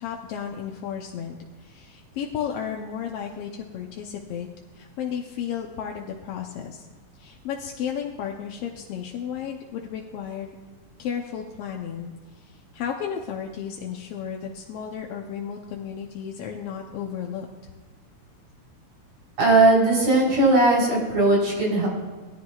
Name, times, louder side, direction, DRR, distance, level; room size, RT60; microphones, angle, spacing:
voice 1, 0.0-4.5 4.7-6.9 7.2-10.5 11.0-17.5, left 8 dB, 70° left, 1 dB, 1.6 m, -33 dB
voice 2, 19.4-21.9, right 2 dB, 65° right, -4 dB, 5.0 m, -18 dB
20.0 x 11.5 x 2.4 m, 1.4 s
omnidirectional pair, 3.4 m